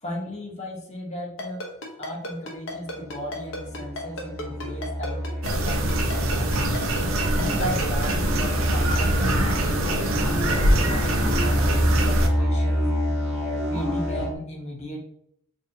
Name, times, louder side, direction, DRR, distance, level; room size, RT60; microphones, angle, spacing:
voice 1, 0.0-1.6 2.0-5.2 5.5-6.5 7.3-9.8 10.1-12.9 13.7-15.0, equal, 35° left, -2 dB, 0.9 m, -35 dB
Ringtone, 1.4-8.1, left 1 dB, 70° left, 0.8 m, -33 dB
sound 1, 2.9-14.3, equal, ahead, 0.9 m, -27 dB
sound 2, 5.4-12.3, right 1 dB, 75° right, 0.5 m, -24 dB
3.8 x 2.7 x 2.7 m, 0.73 s
head